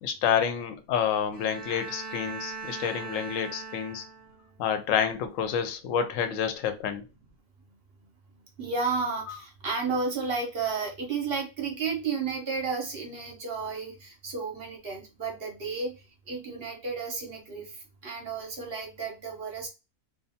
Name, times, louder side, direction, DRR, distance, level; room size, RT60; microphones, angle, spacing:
voice 1, 0.0-4.0 4.6-7.0 9.3-9.4, left 8 dB, 70° left, 0.9 m, -28 dB
Bowed string instrument, 1.3-4.5, right 4 dB, 15° right, 0.4 m, -40 dB
voice 2, 8.6-16.0 16.3-17.8 18.0-19.7, right 4 dB, 55° right, 0.7 m, -32 dB
2.6 x 2.3 x 2.7 m
omnidirectional pair, 1.6 m